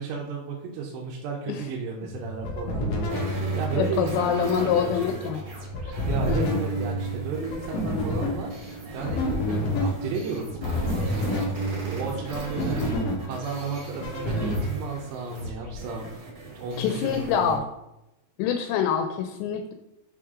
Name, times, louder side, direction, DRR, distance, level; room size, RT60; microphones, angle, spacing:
voice 1, 0.0-4.9 5.2-5.4 5.8-9.2 9.8-12.9 13.3-16.1 16.5-17.6, right 4 dB, 80° right, -4 dB, 3.0 m, -33 dB
sound 1, 2.1-14.6, equal, 65° left, 1.6 m, -29 dB
sound 2, 3.1-17.6, right 2 dB, 50° right, 1.7 m, -40 dB
voice 2, 3.7-5.4 6.3-6.6 16.8-17.6 18.4-19.7, left 8 dB, 85° left, 6 dB, 2.8 m, -25 dB
7.0 x 5.8 x 3.7 m, 0.90 s
omnidirectional pair, 5.0 m